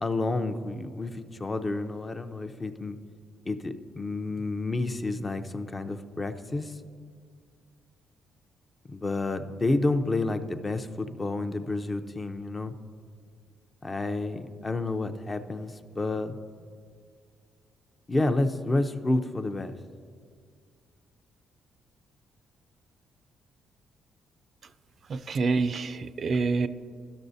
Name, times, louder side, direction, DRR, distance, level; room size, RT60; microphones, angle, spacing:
voice 1, 0.0-3.0 3.5-6.7 8.8-12.7 13.8-16.3 18.1-19.8, left 2 dB, 25° left, 8 dB, 0.5 m, -30 dB
voice 2, 25.1-26.7, right 4 dB, 50° right, 12 dB, 0.3 m, -27 dB
12.5 x 6.2 x 2.7 m, 2.1 s
cardioid pair, 90°, 0 cm